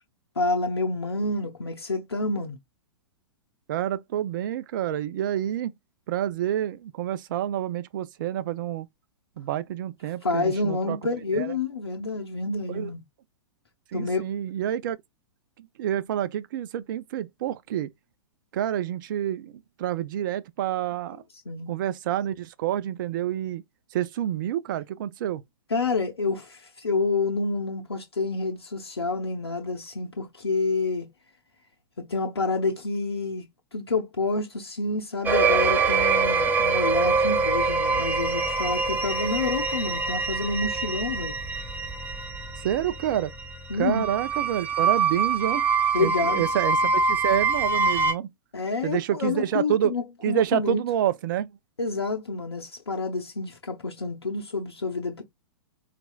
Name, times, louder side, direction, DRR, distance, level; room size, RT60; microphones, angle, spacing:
voice 1, 0.4-2.6 10.2-13.0 13.9-14.3 21.5-21.7 25.7-31.1 32.0-33.4 33.7-41.4 43.7-44.0 45.9-46.5 48.5-50.8 51.8-55.2, left 3 dB, 85° left, 0.7 m, -28 dB
voice 2, 3.7-5.7 6.1-8.9 9.4-11.0 11.3-11.5 12.7-12.9 13.9-15.0 15.6-17.9 18.5-19.5 19.8-21.2 21.7-23.6 23.9-25.4 42.6-43.3 43.7-45.6 46.0-48.3 48.8-49.9 50.2-51.5, right 11 dB, 55° right, 0.4 m, -28 dB
sound 1, 35.2-48.1, right 4 dB, 15° right, 0.8 m, -25 dB
4.1 x 2.4 x 2.3 m
figure-of-eight pair, 110°, 13 cm